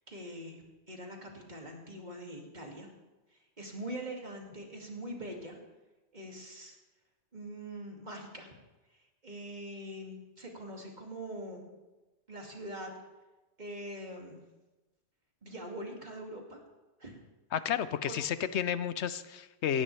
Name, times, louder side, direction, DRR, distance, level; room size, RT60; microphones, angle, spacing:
voice 1, 0.1-2.9 3.6-5.6 6.1-6.8 7.3-8.5 9.2-11.7 12.3-12.9 13.6-14.4 15.4-16.6 17.0-17.1 18.1-18.2, right 1 dB, 40° right, 0 dB, 2.6 m, -43 dB
voice 2, 17.5-19.8, left 9 dB, 85° left, 13 dB, 1.0 m, -32 dB
18.0 x 15.5 x 3.4 m, 1.1 s
omnidirectional pair, 1.1 m